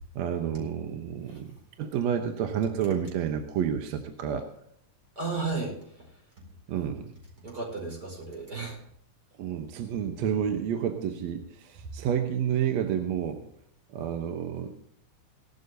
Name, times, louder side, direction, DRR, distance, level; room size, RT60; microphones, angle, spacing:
voice 1, 0.2-1.5 1.8-4.5 6.7-7.0 9.4-13.4 13.9-14.8, right 8 dB, 70° right, 5 dB, 2.0 m, -29 dB
voice 2, 5.2-5.7 7.4-8.8, right 3 dB, 30° right, 0 dB, 5.0 m, -33 dB
18.5 x 12.0 x 2.7 m, 0.72 s
omnidirectional pair, 3.6 m